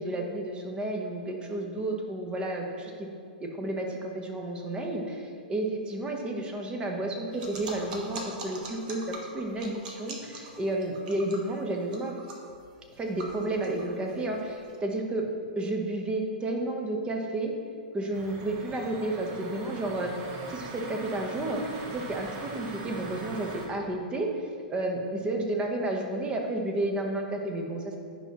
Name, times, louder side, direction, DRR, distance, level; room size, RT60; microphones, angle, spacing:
voice 1, 0.0-3.1 3.4-12.1 13.0-15.3 15.6-17.5 17.9-20.1 20.5-28.0, right 1 dB, 20° right, 2 dB, 1.0 m, -31 dB
sound 1, 7.3-14.7, right 2 dB, 60° right, 1.3 m, -43 dB
sound 2, 18.1-23.7, right 3 dB, 45° right, 1.0 m, -41 dB
9.7 x 5.8 x 3.0 m, 2.3 s
hypercardioid pair, 120°, 5 cm